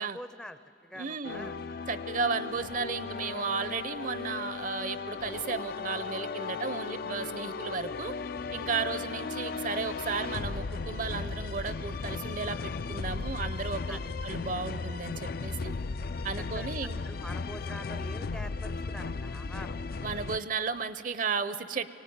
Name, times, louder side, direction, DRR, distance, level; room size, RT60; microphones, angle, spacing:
voice 1, 0.0-1.6 8.7-8.9 13.9-14.1 14.5-14.6 16.4-16.7 17.0-19.8, left 1 dB, 5° left, 11 dB, 0.6 m, -45 dB
voice 2, 1.0-1.5 1.9-8.1 8.5-15.8 16.2-17.0 20.0-21.9, right 5 dB, 50° right, 13 dB, 0.7 m, -34 dB
sound 1, 1.2-20.4, left 4 dB, 60° left, 0.5 m, -36 dB
sound 2, 8.4-18.9, left 1 dB, 35° left, 0.8 m, -49 dB
23.5 x 17.5 x 9.5 m, 2.6 s
head